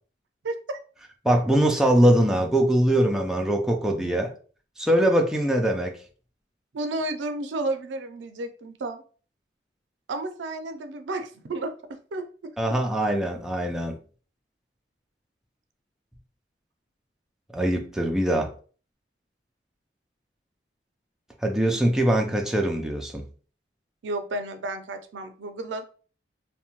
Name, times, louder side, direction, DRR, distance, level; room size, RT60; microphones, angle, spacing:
voice 1, 0.4-0.8 6.7-9.0 10.1-11.7 12.1-12.5 24.0-25.8, right 2 dB, 90° right, 8 dB, 0.4 m, -32 dB
voice 2, 1.2-4.3 4.8-6.0 12.6-13.9 17.5-18.5 21.4-23.2, right 1 dB, 5° right, 1 dB, 0.3 m, -22 dB
2.7 x 2.1 x 2.8 m, 0.40 s
head